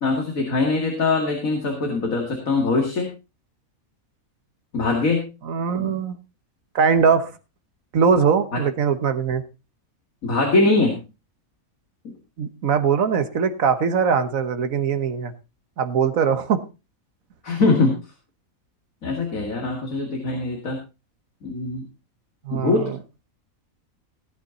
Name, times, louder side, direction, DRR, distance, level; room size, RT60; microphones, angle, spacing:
voice 1, 0.0-3.1 4.7-5.2 5.8-5.9 8.5-8.6 10.2-11.0 12.0-12.1 17.4-18.0 19.0-20.8 21.4-21.8 22.5-22.9, left 3 dB, 70° left, 1 dB, 2.6 m, -22 dB
voice 2, 5.4-6.2 6.7-7.3 7.9-9.4 12.4-15.3 15.8-16.6 22.4-23.0, right 6 dB, 70° right, 10 dB, 1.6 m, -21 dB
17.0 x 8.6 x 3.9 m, 0.29 s
omnidirectional pair, 1.5 m